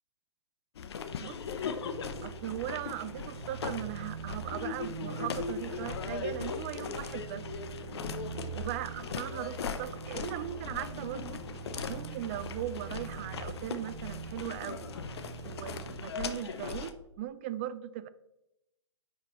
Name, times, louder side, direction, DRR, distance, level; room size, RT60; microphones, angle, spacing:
sound 1, 0.8-16.9, left 6 dB, 55° left, 0.7 m, -39 dB
voice 1, 1.2-1.7 2.2-7.5 8.5-11.4 11.9-14.9 15.4-18.1, right 12 dB, 25° right, 14 dB, 0.3 m, -39 dB
sound 2, 1.4-16.2, right 6 dB, 60° right, 0.9 m, -44 dB
10.0 x 4.6 x 3.0 m, 0.88 s
figure-of-eight pair, 135°, 16 cm